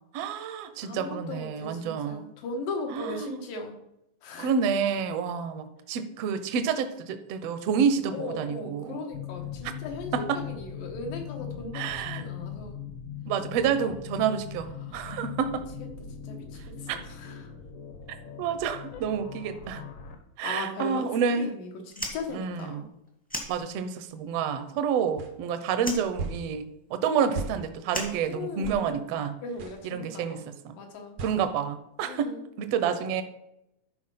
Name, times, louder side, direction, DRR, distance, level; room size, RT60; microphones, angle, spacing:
voice 1, 0.1-2.3 2.9-3.4 4.4-9.0 10.1-10.4 11.7-12.3 13.3-15.7 16.9-17.0 18.4-19.8 20.4-21.5 22.3-22.9 23.5-29.4 29.8-30.7 31.2-33.2, right 7 dB, 75° right, 9 dB, 1.5 m, -29 dB
voice 2, 0.8-3.8 4.2-4.5 8.1-12.8 13.6-13.9 14.8-15.0 16.2-17.5 18.9-19.0 20.4-21.1 21.4-21.7 22.0-22.9 28.3-30.4 30.8-31.2 32.0-32.4, left 3 dB, 85° left, 3 dB, 3.2 m, -38 dB
sound 1, 9.1-20.2, left 8 dB, 65° left, 1.5 m, -40 dB
Fire, 21.8-24.2 24.4-25.4 25.8-28.9, equal, 10° left, 0.5 m, -38 dB
sound 2, 25.2-25.3 26.2-26.4 27.3-27.6 28.6-28.8 29.6-29.8 31.2-31.4, right 4 dB, 90° right, 0.9 m, -34 dB
12.0 x 4.6 x 5.7 m, 0.83 s
omnidirectional pair, 3.8 m